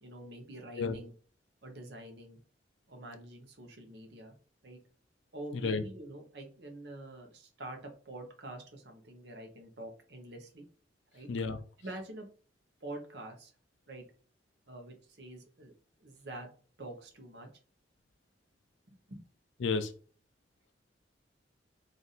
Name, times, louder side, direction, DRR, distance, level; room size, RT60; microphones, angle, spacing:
voice 1, 0.0-1.1 1.6-2.4 2.9-4.3 4.6-4.8 5.3-10.7 11.1-11.3 11.8-12.3 12.8-13.5 13.9-14.0 14.7-15.7 16.0-16.5 16.8-17.5 18.9-19.2, right 1 dB, 65° right, 3 dB, 1.0 m, -46 dB
voice 2, 19.6-19.9, left 4 dB, 90° left, 8 dB, 0.5 m, -31 dB
3.4 x 2.6 x 4.1 m, 0.40 s
head